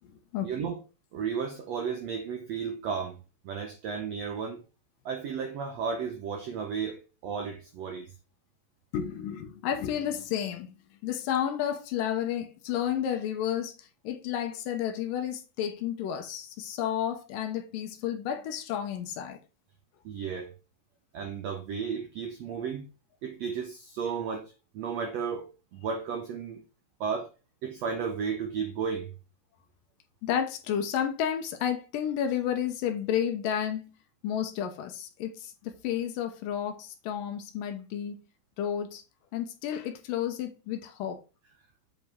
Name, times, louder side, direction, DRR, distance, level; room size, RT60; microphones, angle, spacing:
voice 1, 0.4-0.8 1.1-3.2 3.4-4.6 5.0-8.1 20.0-20.5 21.1-22.9 23.2-26.6 27.0-27.3 27.6-29.1, right 6 dB, 75° right, 1.5 m, -33 dB
voice 2, 8.9-10.7 11.0-13.7 14.0-19.4 30.2-33.8 34.2-35.3 35.6-38.2 38.6-39.0 39.3-41.2, left 9 dB, 75° left, 2.4 m, -31 dB
8.1 x 5.1 x 3.5 m
omnidirectional pair, 4.2 m